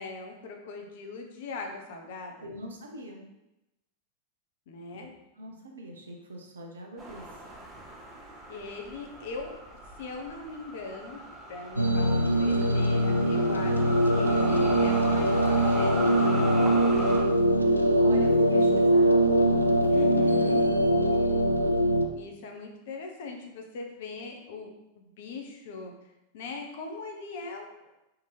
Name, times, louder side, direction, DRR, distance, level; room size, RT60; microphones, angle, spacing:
voice 1, 0.0-2.5 4.7-5.1 8.5-9.5 10.0-11.2 11.5-17.2 19.9-20.6 22.1-25.9 26.3-27.7, left 4 dB, 55° left, 2 dB, 0.7 m, -40 dB
voice 2, 2.4-3.2 5.0-5.1 5.4-7.3 18.0-19.1 19.5-19.8, right 1 dB, 70° right, 2 dB, 0.7 m, -42 dB
sound 1, 7.0-17.2, right 1 dB, 20° right, 0.8 m, -37 dB
sound 2, 11.8-22.1, right 1 dB, 90° right, 0.3 m, -22 dB
3.7 x 2.9 x 4.4 m, 0.93 s
figure-of-eight pair, 90°, 0 cm